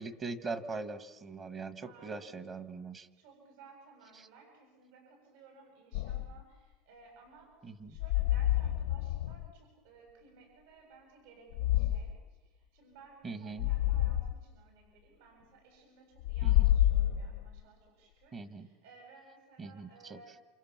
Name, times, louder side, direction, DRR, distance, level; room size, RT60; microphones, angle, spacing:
voice 1, 0.0-3.1 4.2-4.3 7.6-8.0 13.2-13.7 16.4-16.7 18.3-18.7 19.6-20.2, right 4 dB, 20° right, 11 dB, 1.1 m, -41 dB
voice 2, 1.8-2.4 3.2-20.4, right 4 dB, 70° right, 2 dB, 7.6 m, -58 dB
sound 1, 5.9-6.4 7.9-9.5 11.5-12.2 13.6-14.3 16.2-17.6, left 14 dB, 80° left, 0.9 m, -28 dB
28.5 x 27.5 x 7.3 m, 1.1 s
cardioid pair, 180°, 0 cm